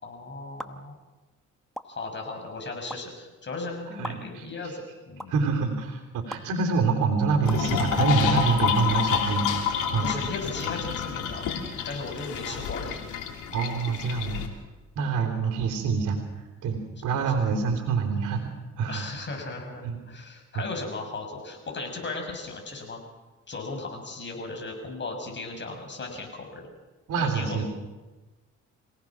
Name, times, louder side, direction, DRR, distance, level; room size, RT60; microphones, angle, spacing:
voice 1, 0.0-1.0 1.9-5.3 10.0-11.4 11.8-13.0 15.0-15.2 18.9-23.0 23.5-26.7 27.2-27.7, left 3 dB, 40° left, 2 dB, 6.6 m, -36 dB
sound 1, 0.6-0.7 1.7-1.8 2.9-3.0 4.0-4.1 5.2-5.3 6.3-6.4 7.5-7.6, equal, ahead, 1.1 m, -35 dB
voice 2, 4.0-4.7 5.3-9.5 9.9-10.1 12.5-12.6 13.5-14.4 15.0-16.2 16.6-18.5 18.8-19.0 19.8-20.0 20.5-20.7 27.1-27.6, right 5 dB, 75° right, 0 dB, 3.6 m, -26 dB
sound 2, 7.4-14.5, left 7 dB, 85° left, 3.1 m, -28 dB
26.5 x 17.5 x 6.1 m, 1.2 s
cardioid pair, 90°, 30 cm